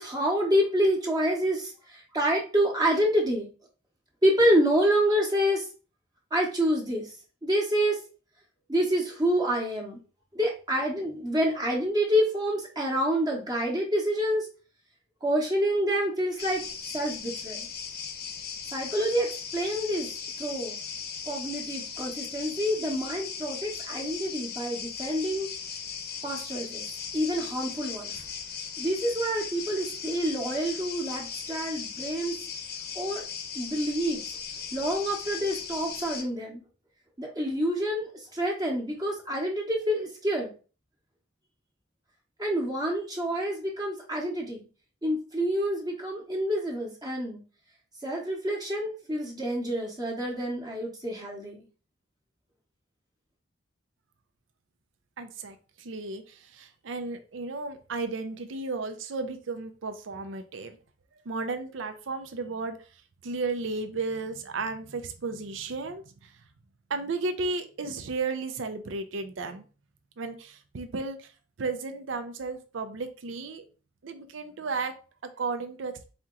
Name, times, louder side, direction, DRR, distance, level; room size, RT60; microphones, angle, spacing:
voice 1, 0.0-3.5 4.2-5.6 6.3-7.1 7.4-8.0 8.7-10.0 10.3-14.5 15.2-16.6 16.9-17.6 18.7-20.1 20.4-20.7 21.3-25.5 26.2-26.9 27.1-28.1 28.8-32.3 32.9-33.2 33.5-34.2 34.7-36.6 37.2-40.5 42.4-44.6 45.0-47.4 48.0-51.6, equal, 20° right, -1 dB, 0.9 m, -27 dB
sound 1, 16.4-36.2, left 7 dB, 55° left, 0.8 m, -38 dB
voice 2, 55.2-60.8 61.3-62.8 63.2-66.3 66.9-69.6 70.2-71.3 71.6-73.6 74.0-74.9 75.4-75.9, right 3 dB, 75° right, 7 dB, 0.6 m, -34 dB
4.3 x 2.9 x 3.7 m, 0.35 s
head